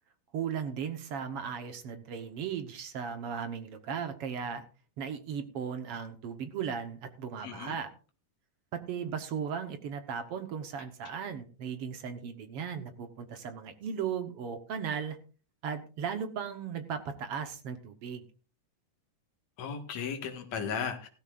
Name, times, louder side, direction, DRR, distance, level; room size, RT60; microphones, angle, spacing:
voice 1, 0.3-4.6 5.0-7.9 8.7-15.2 15.6-18.2, right 7 dB, 60° right, 8 dB, 1.7 m, -36 dB
voice 2, 7.4-7.8 19.6-21.1, left 6 dB, 60° left, 4 dB, 2.9 m, -35 dB
16.0 x 13.5 x 2.5 m, 0.36 s
omnidirectional pair, 3.7 m